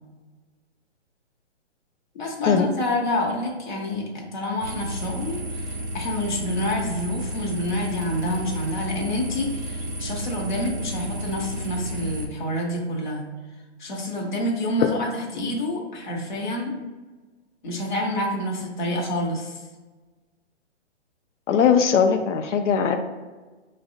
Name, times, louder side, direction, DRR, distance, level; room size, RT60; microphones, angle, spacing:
voice 1, 2.1-13.3 13.8-16.7 17.6-19.6, left 1 dB, 40° left, -1 dB, 0.8 m, -28 dB
sound 1, 4.6-12.3, right 1 dB, 40° right, 0.6 m, -32 dB
voice 2, 21.5-23.0, left 7 dB, 90° left, 5 dB, 0.5 m, -19 dB
5.1 x 2.0 x 2.6 m, 1.3 s
hypercardioid pair, 170°, 35 cm